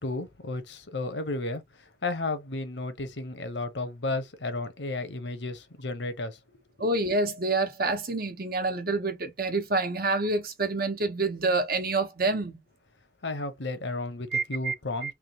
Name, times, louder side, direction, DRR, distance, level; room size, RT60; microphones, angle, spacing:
voice 1, 0.0-6.4 13.2-15.1, left 2 dB, 90° left, 1.0 m, -33 dB
voice 2, 6.8-12.6 14.3-14.7 15.0-15.1, right 3 dB, 60° right, 1.1 m, -27 dB
3.6 x 3.1 x 3.0 m
head